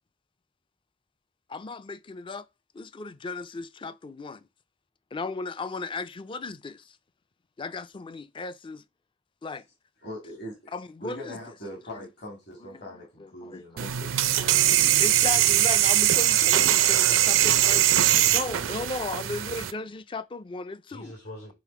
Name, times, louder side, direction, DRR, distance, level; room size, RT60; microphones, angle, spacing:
voice 1, 1.5-2.5 2.7-4.4 5.1-7.0 7.6-8.8 9.4-9.6 10.7-11.4 12.0-12.1 12.6-17.8 18.3-21.1, left 3 dB, 25° left, 0.4 m, -36 dB
voice 2, 10.0-10.7 11.0-14.8, equal, 55° left, 2.8 m, -42 dB
sound 1, 13.8-19.7, right 13 dB, 85° right, 0.5 m, -21 dB
voice 3, 16.4-19.3 20.9-21.5, equal, 75° left, 2.8 m, -43 dB
7.5 x 3.7 x 4.7 m
head